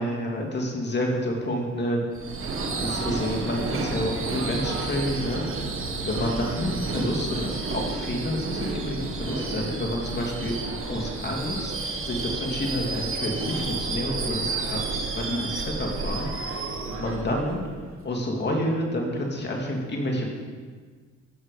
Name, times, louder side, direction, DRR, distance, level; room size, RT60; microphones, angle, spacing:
voice 1, 0.0-2.1 2.6-5.4 6.0-11.7 12.0-16.5 16.9-17.6 18.0-20.3, left 1 dB, 35° left, -1 dB, 2.6 m, -29 dB
Subway metro underground / Screech, 2.1-18.1, right 3 dB, 45° right, 1.7 m, -31 dB
13.5 x 7.4 x 5.0 m, 1.5 s
cardioid pair, 90°, 30 cm